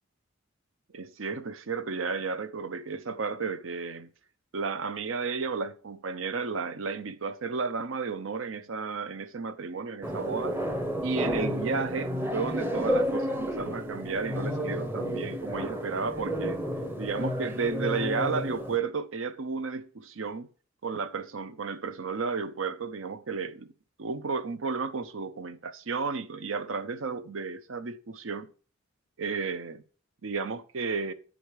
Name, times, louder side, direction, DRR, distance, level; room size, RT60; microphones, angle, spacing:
voice 1, 0.9-4.1 4.5-10.6 11.0-16.6 17.0-20.5 20.8-23.7 24.0-28.5 29.2-29.8 30.2-31.1, right 4 dB, 75° right, 0.7 m, -33 dB
sound 1, 10.0-18.8, equal, 10° right, 0.7 m, -31 dB
9.1 x 5.0 x 4.7 m
head